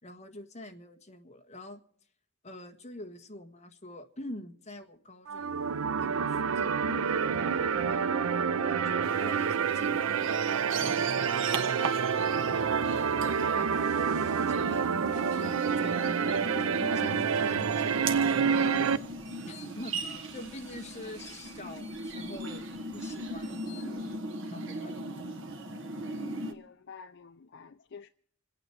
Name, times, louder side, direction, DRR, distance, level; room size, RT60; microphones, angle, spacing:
voice 1, 0.0-1.8 2.4-5.6 6.0-8.2 8.5-10.3 10.7-19.0 19.4-22.7 22.9-24.9, left 1 dB, 35° left, 1.5 m, -46 dB
sound 1, 5.3-19.0, right 6 dB, 85° right, 0.5 m, -28 dB
sound 2, 9.0-26.5, right 2 dB, 65° right, 1.6 m, -39 dB
sound 3, 13.7-24.2, right 1 dB, 50° right, 6.6 m, -55 dB
voice 2, 26.4-28.1, left 5 dB, 60° left, 0.5 m, -49 dB
27.0 x 9.2 x 4.6 m
head